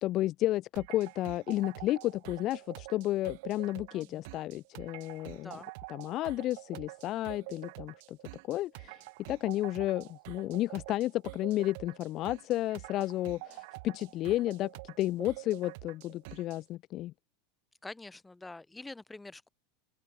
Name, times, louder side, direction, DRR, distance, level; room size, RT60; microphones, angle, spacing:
voice 1, 0.0-5.5 5.9-8.2 8.5-9.0 9.3-17.1, left 15 dB, 40° left, 0.5 m, -32 dB
sound 1, 0.8-16.6, right 26 dB, 60° right, 0.8 m, -47 dB
voice 2, 3.9-4.2 5.3-5.7 17.8-19.5, left 2 dB, 5° left, 2.0 m, -46 dB
open air
supercardioid pair, 150°, 0 cm